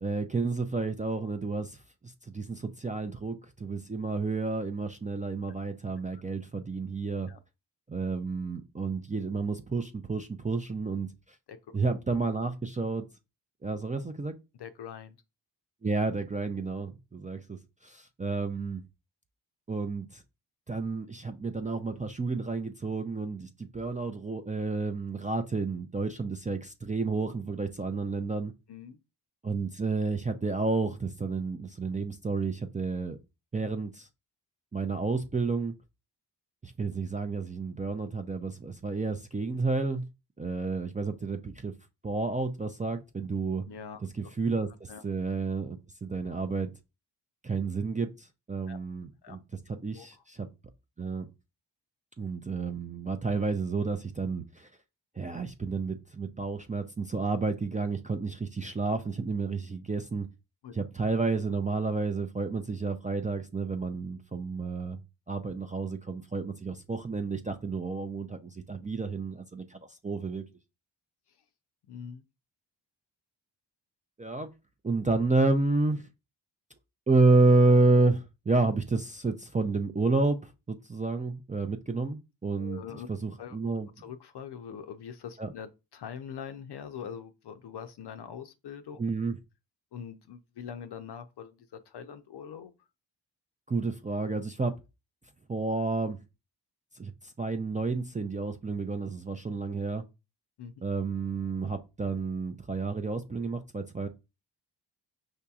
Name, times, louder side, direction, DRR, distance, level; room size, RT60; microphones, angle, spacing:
voice 1, 0.0-7.3 7.9-11.1 11.7-13.1 13.6-14.3 15.8-18.8 19.7-20.2 20.7-28.5 29.4-33.2 33.5-34.1 34.7-35.7 36.6-40.0 40.4-41.7 42.0-43.6 44.2-46.7 47.4-49.4 49.7-50.5 51.0-51.3 52.2-54.7 55.2-60.3 60.7-65.0 65.3-70.4 74.2-74.5 74.8-76.1 77.1-82.8 83.1-83.9 85.4-85.5 89.0-89.3 93.7-94.7 95.5-96.2 96.9-100.0 100.8-104.1, right 3 dB, 20° right, 0.3 m, -30 dB
voice 2, 14.5-15.2 28.7-29.0 43.7-44.0 44.9-45.0 48.7-48.8 49.2-49.4 49.9-50.2 60.6-60.7 71.3-71.4 71.9-72.2 82.6-83.1 83.4-83.6 84.0-89.0 89.9-92.7 100.6-100.7, left 8 dB, 60° left, 0.5 m, -43 dB
4.9 x 2.7 x 2.3 m
cardioid pair, 50°, 46 cm